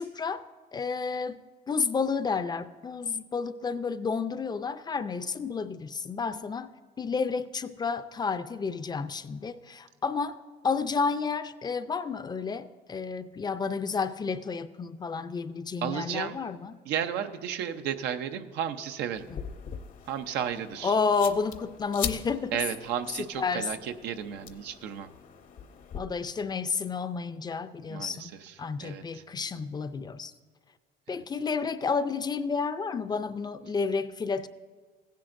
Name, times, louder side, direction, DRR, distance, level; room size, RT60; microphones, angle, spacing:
voice 1, 0.0-6.7 7.0-10.4 10.6-16.8 19.3-19.4 20.8-22.6 23.2-23.7 26.0-28.3 28.6-30.3 31.1-34.5, left 5 dB, 25° left, 13 dB, 0.4 m, -31 dB
voice 2, 15.8-16.4 16.9-19.3 20.1-20.9 22.5-25.1 27.9-29.2, right 9 dB, 85° right, 8 dB, 0.7 m, -33 dB
sound 1, 19.1-26.0, left 8 dB, 55° left, 0.7 m, -41 dB
15.5 x 10.5 x 2.5 m, 1.5 s
cardioid pair, 110°, 17 cm